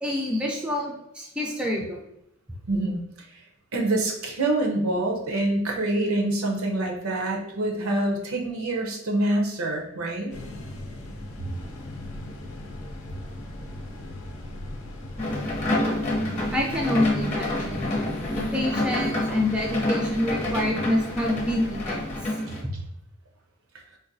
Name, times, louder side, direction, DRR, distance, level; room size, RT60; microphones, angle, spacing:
voice 1, 0.0-2.0 16.5-17.9 18.3-22.0, left 1 dB, 5° right, -1 dB, 0.4 m, -27 dB
voice 2, 2.7-3.3 3.7-10.3 11.4-11.5 22.5-22.8, right 2 dB, 75° right, 1 dB, 0.6 m, -26 dB
sound 1, 10.3-22.3, left 1 dB, 75° left, 0.5 m, -38 dB
sound 2, 15.2-22.6, left 1 dB, 35° left, 0.8 m, -28 dB
3.9 x 2.2 x 2.6 m, 0.78 s
head